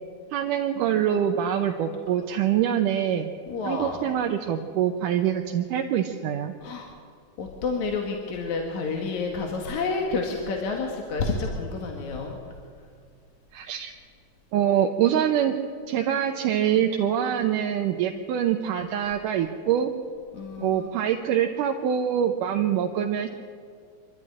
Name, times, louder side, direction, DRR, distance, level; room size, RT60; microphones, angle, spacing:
voice 1, 0.3-3.3 3.7-6.5 13.5-13.9 14.5-15.6 15.9-19.9 20.6-23.3, right 9 dB, 80° right, 3 dB, 2.5 m, -24 dB
voice 2, 3.5-4.0 6.6-6.9 7.4-12.4 20.3-20.9, left 4 dB, 65° left, 1 dB, 3.0 m, -29 dB
26.0 x 13.0 x 9.9 m, 2.1 s
omnidirectional pair, 3.8 m